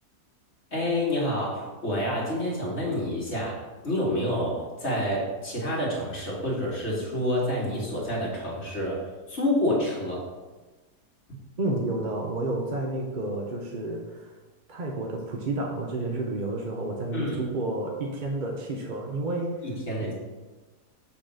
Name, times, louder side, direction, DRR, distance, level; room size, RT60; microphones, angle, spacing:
voice 1, 0.7-10.2 17.1-17.4 19.6-20.1, left 1 dB, 40° left, -4 dB, 2.2 m, -28 dB
voice 2, 11.6-14.3 14.7-19.7 20.0-20.1, right 2 dB, 45° right, 0 dB, 0.7 m, -30 dB
6.4 x 4.1 x 6.3 m, 1.2 s
omnidirectional pair, 1.8 m